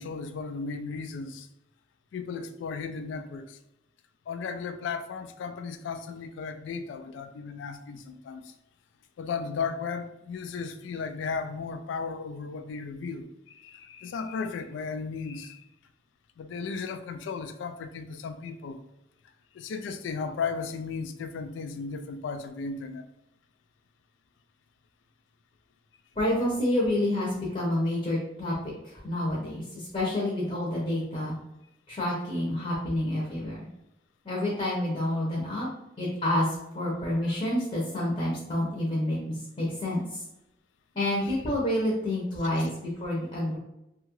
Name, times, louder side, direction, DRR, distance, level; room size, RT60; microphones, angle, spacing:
voice 1, 0.0-1.5 2.1-3.6 4.3-8.5 9.2-15.6 16.4-18.8 19.5-23.0 42.4-42.7, left 5 dB, 90° left, 0.3 m, -35 dB
voice 2, 26.2-31.3 31.9-33.7 34.2-35.7 36.0-40.2 40.9-43.6, left 1 dB, 35° left, 0.6 m, -28 dB
2.8 x 2.3 x 3.0 m
head